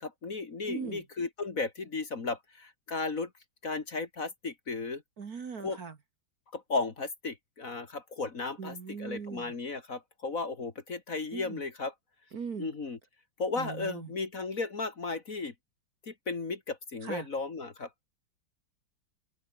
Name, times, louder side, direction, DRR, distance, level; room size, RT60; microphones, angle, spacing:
voice 1, 0.0-3.3 3.6-5.0 5.6-5.8 6.5-11.9 12.6-13.0 13.4-15.5 16.0-17.9, left 3 dB, 40° left, 2.3 m, -35 dB
voice 2, 0.7-1.0 5.2-6.0 8.6-9.5 11.3-11.6 12.3-12.7 13.6-14.1 17.0-17.3, right 6 dB, 45° right, 2.0 m, -39 dB
omnidirectional pair, 2.4 m